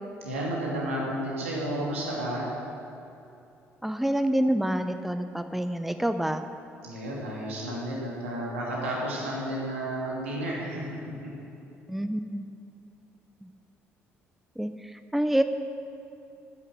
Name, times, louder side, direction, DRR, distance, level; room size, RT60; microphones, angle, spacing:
voice 1, 0.2-2.5 6.8-11.3, right 1 dB, 80° right, -4 dB, 2.5 m, -32 dB
voice 2, 3.8-6.4 11.9-12.5 13.4-13.5 14.6-15.4, right 1 dB, 5° right, 9 dB, 0.7 m, -27 dB
10.5 x 9.8 x 7.3 m, 2.8 s
figure-of-eight pair, 50°, 7 cm